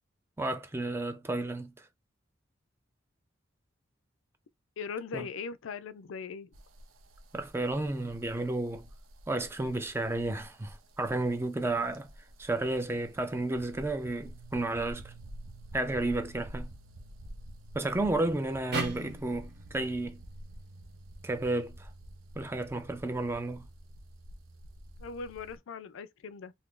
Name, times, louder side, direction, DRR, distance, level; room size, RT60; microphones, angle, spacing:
voice 1, 0.4-1.7 5.1-5.3 7.3-8.9 9.3-12.1 12.4-15.1 15.7-16.7 17.7-20.2 21.2-21.9 22.4-23.7, right 2 dB, 10° right, 0.3 m, -32 dB
voice 2, 4.8-6.5 25.0-26.5, left 5 dB, 75° left, 0.4 m, -40 dB
sound 1, 6.5-25.6, right 1 dB, 85° right, 0.7 m, -49 dB
sound 2, 18.7-21.9, right 3 dB, 55° right, 1.0 m, -40 dB
2.7 x 2.5 x 3.6 m
head